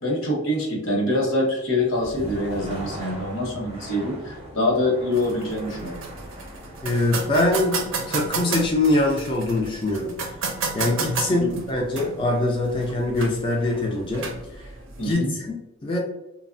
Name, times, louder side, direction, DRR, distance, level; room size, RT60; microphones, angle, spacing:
voice 1, 0.0-6.0 11.4-11.5 15.0-15.3, left 1 dB, 80° left, -1 dB, 0.9 m, -25 dB
sound 1, 1.7-13.6, equal, 30° right, 0.5 m, -41 dB
sound 2, 5.1-15.1, right 4 dB, 80° right, 0.5 m, -33 dB
voice 2, 6.8-10.2 10.7-14.3 15.0-15.5 15.8-16.0, left 2 dB, 25° left, -2 dB, 0.3 m, -23 dB
2.9 x 2.0 x 2.5 m, 0.94 s
head